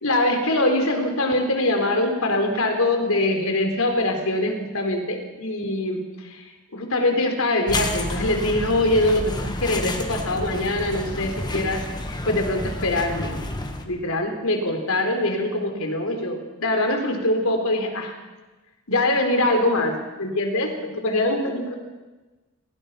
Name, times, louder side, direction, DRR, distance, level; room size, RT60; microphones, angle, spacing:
voice 1, 0.0-6.4 6.7-11.8 12.2-13.5 13.8-18.1 18.9-21.7, left 1 dB, 75° left, 4 dB, 4.1 m, -23 dB
sound 1, 7.7-13.8, left 1 dB, 20° left, 1.9 m, -30 dB
29.5 x 19.5 x 5.8 m, 1.2 s
head